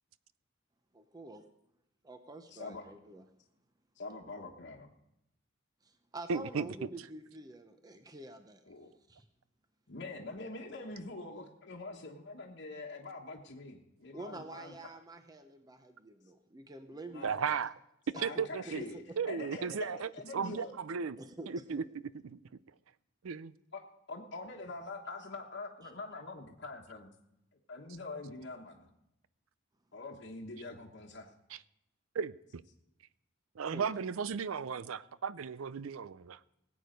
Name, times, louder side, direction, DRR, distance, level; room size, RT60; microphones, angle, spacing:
voice 1, 0.9-1.4 2.0-3.2 5.8-8.6 9.1-9.3 14.1-17.6 18.1-19.3 21.2-21.8 25.8-25.9 33.7-34.0, right 2 dB, 20° right, 8 dB, 0.7 m, -48 dB
voice 2, 2.5-2.8 4.0-4.9 8.7-8.9 9.9-14.7 17.1-17.4 18.1-20.7 23.7-23.8 24.1-27.1 27.7-28.9 29.9-31.3, left 3 dB, 55° left, -3 dB, 1.2 m, -44 dB
voice 3, 6.3-6.7 17.2-17.7 18.2-18.8 19.2-21.2 21.5-21.8 22.2-22.4 23.2-23.5 32.1-32.6 33.6-36.4, right 6 dB, 80° right, 17 dB, 0.5 m, -35 dB
19.0 x 8.4 x 5.2 m, 0.85 s
head